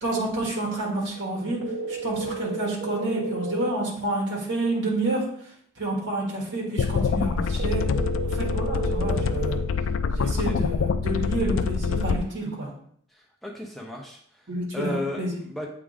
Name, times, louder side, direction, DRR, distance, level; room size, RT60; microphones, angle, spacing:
voice 1, 0.0-1.6 1.9-5.2 5.8-7.8 8.2-9.6 10.2-12.7 14.5-15.4, right 2 dB, 55° right, -3 dB, 2.0 m, -29 dB
sound 1, 1.6-3.6 7.6-9.6, right 4 dB, 75° right, 1.0 m, -32 dB
sound 2, 6.8-12.2, left 5 dB, 65° left, 0.3 m, -25 dB
voice 2, 10.2-10.6 13.1-14.4 14.7-15.7, left 1 dB, ahead, -1 dB, 0.6 m, -35 dB
8.1 x 3.5 x 3.5 m, 0.65 s
head